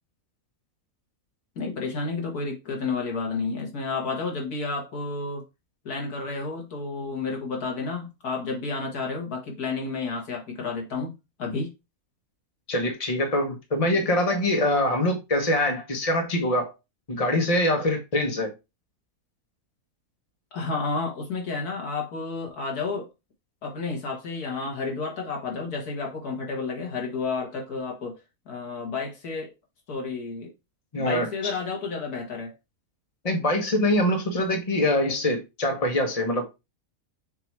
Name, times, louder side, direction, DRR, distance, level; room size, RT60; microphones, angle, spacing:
voice 1, 1.6-5.4 5.8-11.7 20.5-23.1 23.6-28.2 28.5-29.5 29.9-30.5 30.9-32.5, left 4 dB, 85° left, 2.3 m, -31 dB
voice 2, 12.7-16.7 17.1-18.5 30.9-31.3 33.2-36.6, left 1 dB, 25° left, 1.3 m, -24 dB
6.8 x 3.0 x 4.6 m
omnidirectional pair, 1.6 m